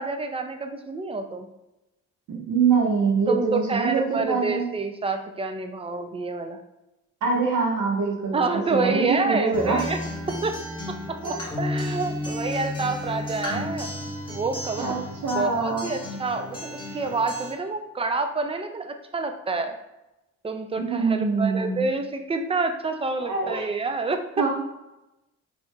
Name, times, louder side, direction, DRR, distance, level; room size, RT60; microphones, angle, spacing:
voice 1, 0.0-1.5 3.3-6.6 8.3-10.0 10.3-10.6 11.6-13.9 14.3-14.9 15.3-19.8 20.4-24.5, right 3 dB, 20° right, 6 dB, 0.3 m, -28 dB
voice 2, 2.3-4.6 7.2-9.8 11.2-11.3 14.8-15.0 15.2-15.9 20.8-21.9 23.2-23.7 24.4-24.5, right 4 dB, 75° right, -1 dB, 1.1 m, -24 dB
Acoustic guitar, 9.5-17.5, left 1 dB, 15° left, 1.3 m, -33 dB
4.5 x 2.7 x 2.2 m, 0.96 s
cardioid pair, 90°, 30 cm